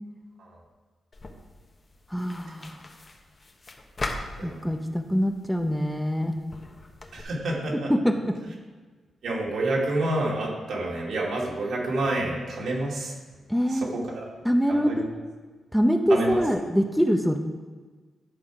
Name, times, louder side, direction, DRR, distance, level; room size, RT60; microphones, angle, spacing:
sound 1, 1.1-7.2, left 2 dB, 30° left, 1.0 m, -40 dB
voice 1, 2.1-2.8 4.4-6.3 7.9-8.3 13.5-13.8 14.4-15.1 15.7-17.4, equal, ahead, 5 dB, 0.6 m, -24 dB
voice 2, 7.1-7.9 9.2-13.1 13.7-14.4 14.7-15.1 16.1-16.4, right 2 dB, 75° right, -3 dB, 2.4 m, -28 dB
11.0 x 5.6 x 4.8 m, 1.4 s
wide cardioid pair, 125°, 0 cm